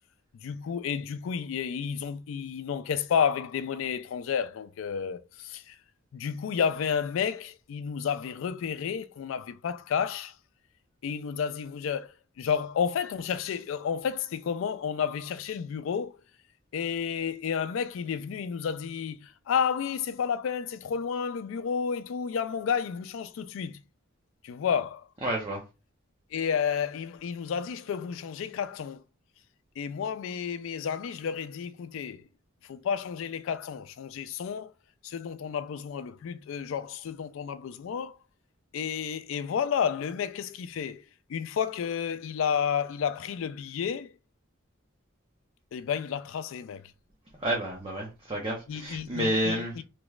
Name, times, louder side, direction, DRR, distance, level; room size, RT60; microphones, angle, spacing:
voice 1, 0.4-5.8 6.1-10.3 11.0-12.1 12.4-16.2 16.7-23.8 24.4-25.1 26.3-29.0 29.8-32.2 32.7-34.7 35.0-38.1 38.7-41.0 41.3-44.1 45.7-46.8 48.7-49.8, left 7 dB, 70° left, 0.3 m, -31 dB
voice 2, 25.2-25.6 47.4-49.7, right 1 dB, 25° right, 0.7 m, -30 dB
3.3 x 3.0 x 2.3 m
head